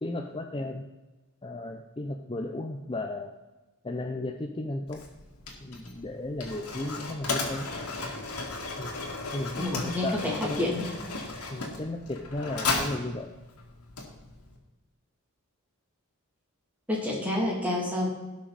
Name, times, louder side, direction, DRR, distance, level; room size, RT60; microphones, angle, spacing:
voice 1, 0.0-0.9 1.4-3.3 3.8-5.0 5.6-7.7 8.8-10.7 11.5-13.3, left 2 dB, 25° left, 3 dB, 0.6 m, -35 dB
Mechanisms, 4.9-14.6, left 3 dB, 90° left, 2.3 m, -35 dB
voice 2, 9.6-10.8 16.9-18.1, left 1 dB, 5° right, -3 dB, 2.9 m, -29 dB
17.5 x 6.0 x 4.2 m, 1.1 s
head